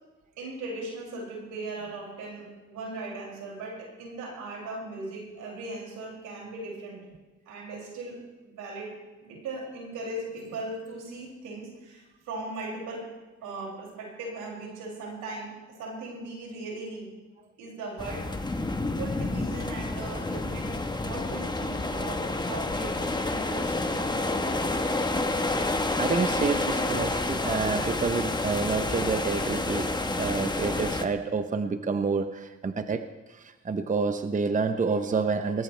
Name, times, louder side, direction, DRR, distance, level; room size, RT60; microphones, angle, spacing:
voice 1, 0.4-7.0 7.5-8.9 9.2-13.1 13.4-17.1 17.6-18.6 19.0-25.1, right 2 dB, 90° right, -2 dB, 6.5 m, -38 dB
sound 1, 18.0-31.1, left 2 dB, 15° left, 1.3 m, -29 dB
voice 2, 26.0-33.1 33.3-35.6, right 4 dB, 25° right, 9 dB, 0.8 m, -28 dB
20.0 x 19.5 x 3.4 m, 1.2 s
cardioid pair, 90°, 30 cm